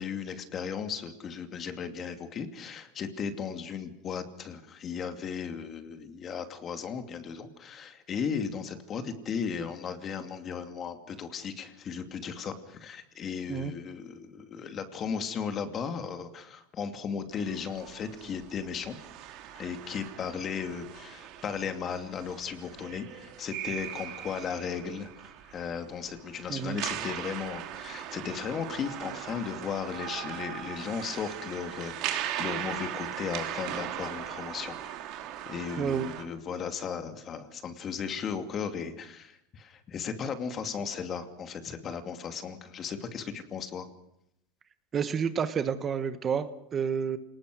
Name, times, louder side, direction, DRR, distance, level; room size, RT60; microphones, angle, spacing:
voice 1, 0.0-19.0 19.5-34.9 35.5-43.9, left 6 dB, 35° left, 7 dB, 2.6 m, -36 dB
sound 1, 17.3-36.2, right 11 dB, 55° right, 3.1 m, -39 dB
voice 2, 35.8-36.1 44.9-47.2, right 7 dB, 30° right, 11 dB, 1.4 m, -29 dB
28.0 x 19.5 x 6.4 m, 0.79 s
supercardioid pair, 115°, 0 cm